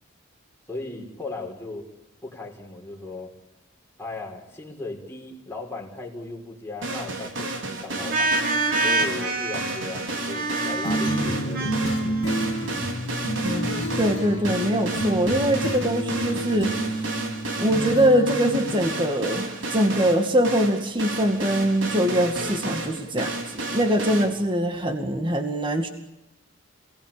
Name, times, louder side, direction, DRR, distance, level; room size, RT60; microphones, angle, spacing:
voice 1, 0.7-1.8 2.2-3.3 4.0-12.4, left 3 dB, 10° left, 0 dB, 5.2 m, -37 dB
sound 1, 6.8-24.3, right 2 dB, 65° right, 4.5 m, -32 dB
sound 2, 8.1-12.8, right 2 dB, 45° right, 3.2 m, -27 dB
sound 3, 10.8-19.3, right 1 dB, 70° left, 2.3 m, -29 dB
voice 2, 13.4-17.1 17.6-25.9, equal, 25° right, 5 dB, 2.2 m, -23 dB
28.5 x 19.0 x 8.9 m, 0.93 s
head